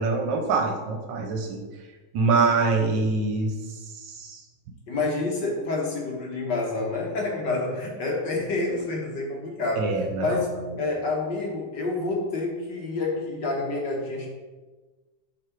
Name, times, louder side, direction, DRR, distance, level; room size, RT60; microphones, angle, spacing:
voice 1, 0.0-1.6 2.1-3.5 4.0-4.4 9.7-10.4, right 4 dB, 70° right, 3 dB, 1.3 m, -24 dB
voice 2, 4.9-9.9 10.2-14.3, left 3 dB, 60° left, -1 dB, 1.8 m, -28 dB
7.7 x 3.6 x 4.5 m, 1.3 s
omnidirectional pair, 2.2 m